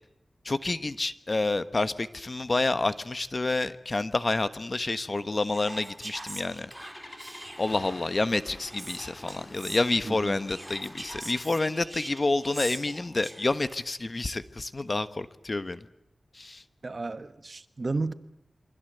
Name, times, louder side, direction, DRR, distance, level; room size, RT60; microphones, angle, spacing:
voice 1, 0.4-6.7 7.6-15.8 16.3-16.6, left 2 dB, 45° left, 1.2 m, -28 dB
Whispering, 5.4-8.0 8.7-9.8 10.5-13.7, right 1 dB, 20° right, 3.2 m, -43 dB
Engine starting, 6.7-11.4, left 1 dB, 25° left, 4.1 m, -47 dB
voice 2, 10.0-10.4 16.8-18.1, right 3 dB, 50° right, 1.3 m, -33 dB
28.0 x 24.5 x 8.0 m
wide cardioid pair, 75°, 0 cm